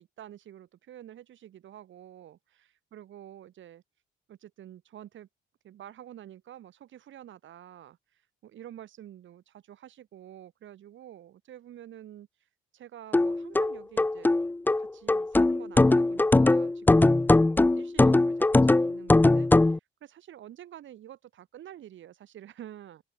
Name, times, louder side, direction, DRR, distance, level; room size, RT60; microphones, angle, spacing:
voice 1, 0.0-3.8 4.3-5.3 5.6-12.3 12.7-14.3 14.8-23.0, right 11 dB, 75° right, 7.9 m, -48 dB
sound 1, 13.1-19.8, left 2 dB, 10° left, 0.5 m, -21 dB
open air
cardioid pair, 90°, 20 cm